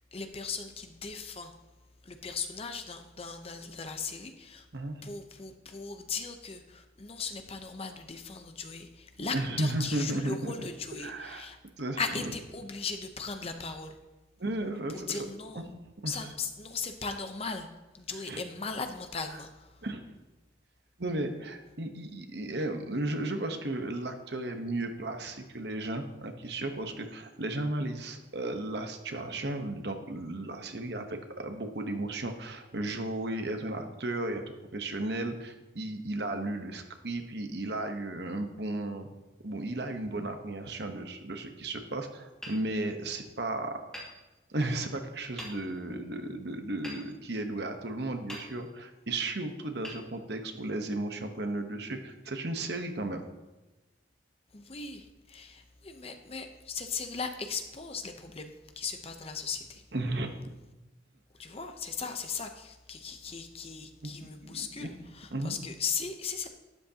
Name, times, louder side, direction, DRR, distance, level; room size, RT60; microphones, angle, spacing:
voice 1, 0.1-1.5 2.0-4.7 5.0-11.6 12.0-14.0 14.9-15.6 16.1-17.7 17.9-19.9 54.5-59.8 61.4-66.5, left 5 dB, 30° left, 7 dB, 0.8 m, -38 dB
voice 2, 4.7-5.1 9.3-10.7 11.0-11.5 11.8-12.3 14.4-15.2 15.5-15.6 16.0-16.1 18.3-18.4 19.8-20.0 21.0-34.4 34.7-39.1 39.4-43.9 44.5-53.2 59.9-60.5 64.0-64.9 65.3-65.6, right 2 dB, 60° right, 6 dB, 1.1 m, -34 dB
Hammer, 42.4-43.4 43.9-44.8 45.4-46.0 46.8-47.8 48.3-49.0 49.8-50.8, equal, 5° left, 2.4 m, -47 dB
12.5 x 10.5 x 2.9 m, 1.1 s
head